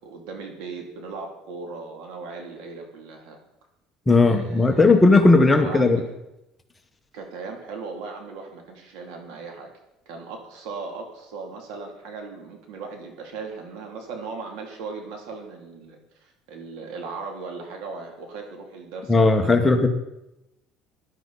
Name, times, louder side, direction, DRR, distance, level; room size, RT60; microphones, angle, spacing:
voice 1, 0.0-3.4 4.2-5.0 5.5-6.1 7.1-9.7 10.1-19.9, right 4 dB, 80° right, 2 dB, 2.9 m, -38 dB
voice 2, 4.1-6.0 19.1-19.9, left 3 dB, 10° left, 5 dB, 1.3 m, -16 dB
17.5 x 11.0 x 4.2 m, 0.90 s
cardioid pair, 125°, 0 cm